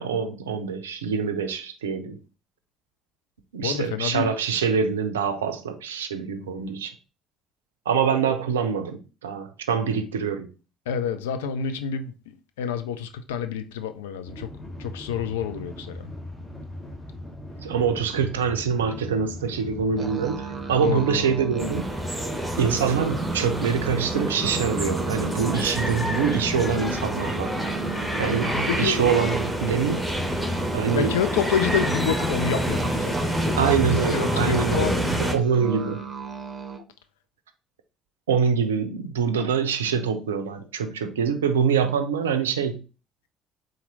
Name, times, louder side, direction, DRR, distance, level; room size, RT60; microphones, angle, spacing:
voice 1, 0.0-2.2 3.5-6.9 7.9-10.5 17.6-22.0 22.6-27.5 28.2-30.0 30.7-31.2 33.6-36.0 38.3-42.8, right 6 dB, 80° right, 0.4 m, -25 dB
voice 2, 3.6-4.3 6.4-6.7 10.9-12.1 12.6-14.5 14.8-16.0 20.8-21.2 28.4-29.0 30.9-33.8 34.1-35.0, left 7 dB, 75° left, 0.3 m, -28 dB
sound 1, 14.2-33.7, left 1 dB, 25° left, 1.2 m, -40 dB
sound 2, 20.0-36.8, right 5 dB, 35° right, 0.7 m, -35 dB
sound 3, 21.6-35.3, equal, ahead, 1.1 m, -28 dB
4.1 x 2.5 x 3.8 m
figure-of-eight pair, 50°, 0 cm